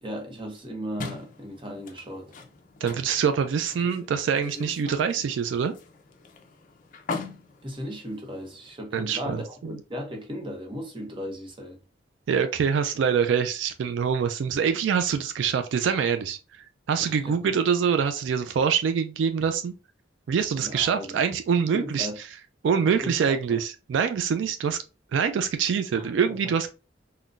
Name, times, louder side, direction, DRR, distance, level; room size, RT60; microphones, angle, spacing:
voice 1, 0.0-2.3 7.6-11.8 17.0-17.4 20.6-21.2 21.7-22.2 23.0-23.6 25.9-26.4, equal, 30° right, 0.7 m, -36 dB
sound 1, 1.0-8.7, left 4 dB, 45° left, 0.4 m, -41 dB
voice 2, 2.8-5.7 8.9-9.7 12.3-19.7 20.3-22.1 22.6-24.8 25.1-26.7, right 7 dB, 85° right, 0.3 m, -25 dB
3.7 x 2.1 x 2.3 m
head